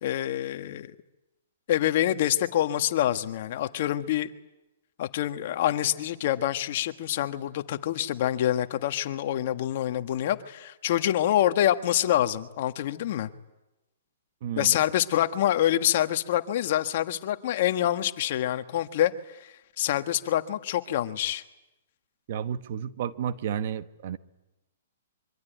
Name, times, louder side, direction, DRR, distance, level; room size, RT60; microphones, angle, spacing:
voice 1, 0.0-0.9 1.7-4.3 5.0-13.3 14.6-19.1 19.4-21.4, left 12 dB, 50° left, 9 dB, 1.5 m, -26 dB
voice 2, 14.4-14.8 22.3-24.2, right 8 dB, 50° right, 12 dB, 1.1 m, -32 dB
26.0 x 24.5 x 9.3 m, 0.98 s
hypercardioid pair, 150°, 0 cm